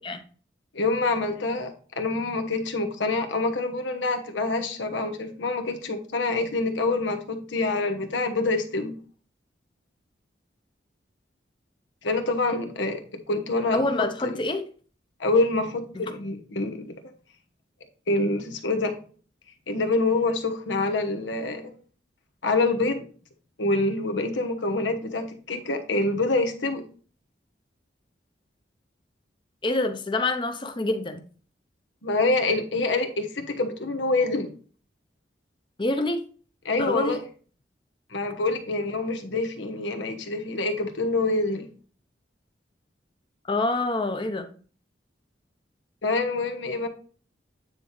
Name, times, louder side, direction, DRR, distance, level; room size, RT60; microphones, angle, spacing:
voice 1, 0.7-1.7 2.0-8.9 12.0-13.0 13.3-14.4 15.2-16.9 18.1-18.9 19.7-21.6 22.4-23.1 23.6-26.8 32.0-34.5 36.6-37.2 38.1-41.7 46.0-46.9, left 2 dB, 85° left, 5 dB, 1.1 m, -26 dB
voice 2, 13.7-14.6 15.9-16.0 29.6-31.2 35.8-36.2 36.8-37.2 43.5-44.5, left 2 dB, 25° left, 7 dB, 0.7 m, -26 dB
9.1 x 4.1 x 3.2 m, 0.41 s
head